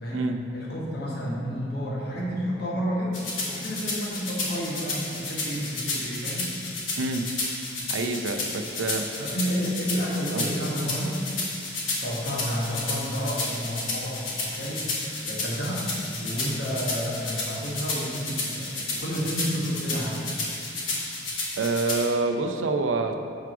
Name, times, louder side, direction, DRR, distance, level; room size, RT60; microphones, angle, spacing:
voice 1, 0.0-6.5 9.2-11.2 12.0-15.8 16.2-20.2, equal, 55° left, -6 dB, 1.2 m, -30 dB
sound 1, 3.1-22.1, left 2 dB, 85° left, 1.4 m, -32 dB
voice 2, 7.0-7.3 7.9-9.1 10.3-10.5 21.6-23.1, right 3 dB, 90° right, 5 dB, 0.5 m, -27 dB
4.7 x 4.7 x 5.9 m, 2.6 s
head